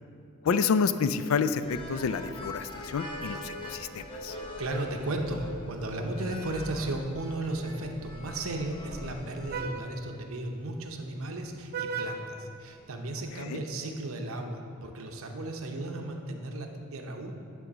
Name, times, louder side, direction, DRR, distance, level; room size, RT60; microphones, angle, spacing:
voice 1, 0.4-4.4 13.4-13.6, left 5 dB, 70° left, 12 dB, 0.3 m, -29 dB
sound 1, 1.6-9.6, left 1 dB, 25° left, 0.9 m, -42 dB
voice 2, 4.2-17.3, right 2 dB, 70° right, 4 dB, 0.8 m, -35 dB
Vehicle horn car horn honking, 5.4-13.3, right 5 dB, 45° right, 0.4 m, -42 dB
9.8 x 3.8 x 6.1 m, 2.5 s
head